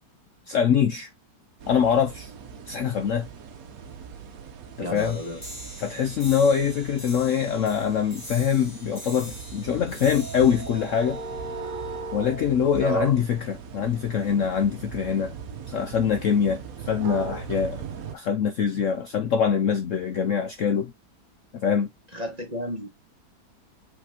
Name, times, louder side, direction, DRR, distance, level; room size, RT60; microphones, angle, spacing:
voice 1, 0.5-1.1 1.7-2.3 2.7-3.3 4.8-5.2 5.8-11.2 12.1-15.3 15.7-17.8 18.1-20.9 21.5-21.9, left 7 dB, 60° left, 0.8 m, -24 dB
sound 1, 1.6-18.1, right 5 dB, 60° right, 1.1 m, -39 dB
voice 2, 4.8-5.4 12.8-13.2 22.1-22.9, right 1 dB, 25° right, 1.4 m, -30 dB
sound 2, 4.9-12.0, equal, 10° left, 2.4 m, -44 dB
5.7 x 3.4 x 2.7 m
omnidirectional pair, 1.8 m